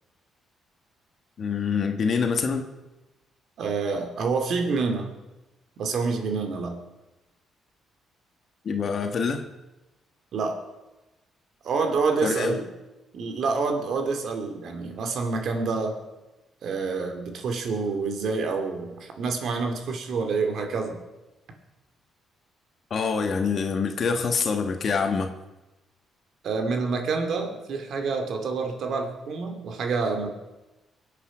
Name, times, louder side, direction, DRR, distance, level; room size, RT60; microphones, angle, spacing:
voice 1, 1.4-2.7 8.6-9.5 12.2-12.6 22.9-25.4, left 5 dB, 50° left, 5 dB, 1.6 m, -25 dB
voice 2, 3.6-5.1 5.8-6.8 10.3-10.6 11.6-12.7 13.1-15.9 16.6-21.0 26.4-30.3, right 4 dB, 65° right, 4 dB, 2.5 m, -27 dB
23.0 x 8.5 x 5.2 m, 1.0 s
cardioid pair, 90°, 0 cm